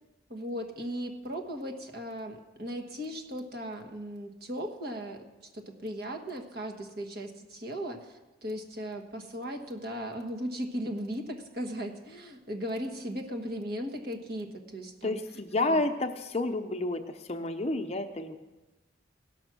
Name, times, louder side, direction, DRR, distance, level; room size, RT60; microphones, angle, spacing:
voice 1, 0.3-5.2 5.5-15.2 15.6-15.9, equal, 55° right, 5 dB, 1.4 m, -37 dB
voice 2, 15.0-18.4, left 2 dB, 35° left, 7 dB, 0.7 m, -30 dB
17.0 x 6.0 x 6.1 m, 1.1 s
head